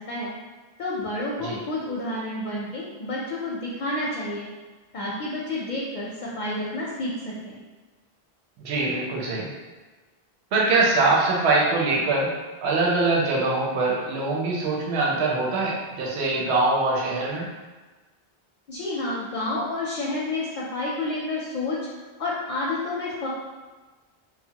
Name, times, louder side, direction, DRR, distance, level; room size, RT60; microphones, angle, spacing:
voice 1, 0.8-4.5 4.9-7.6 18.7-21.8 22.2-23.3, left 2 dB, 55° left, -5 dB, 0.6 m, -29 dB
voice 2, 8.6-9.5 10.5-12.3 12.6-17.5, right 3 dB, 85° right, -3 dB, 0.8 m, -23 dB
2.8 x 2.0 x 2.7 m, 1.3 s
omnidirectional pair, 1.1 m